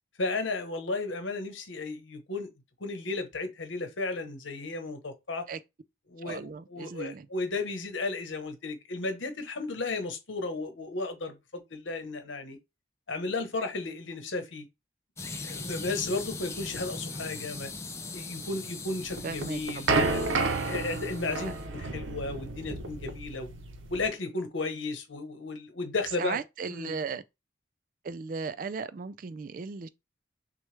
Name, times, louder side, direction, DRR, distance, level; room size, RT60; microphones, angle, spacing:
voice 1, 0.2-2.5 2.8-5.4 6.1-12.6 13.1-14.6 15.4-17.7 18.1-20.2 20.6-23.5 23.9-26.4 26.7-26.9, left 3 dB, 80° left, 1.1 m, -34 dB
voice 2, 6.2-7.3 19.2-20.1 26.2-27.2 28.0-29.9, right 5 dB, 45° right, 0.3 m, -36 dB
sound 1, 15.2-21.7, left 3 dB, 15° left, 0.5 m, -40 dB
sound 2, 19.1-24.1, right 3 dB, 85° right, 0.7 m, -31 dB
6.1 x 2.3 x 3.2 m
head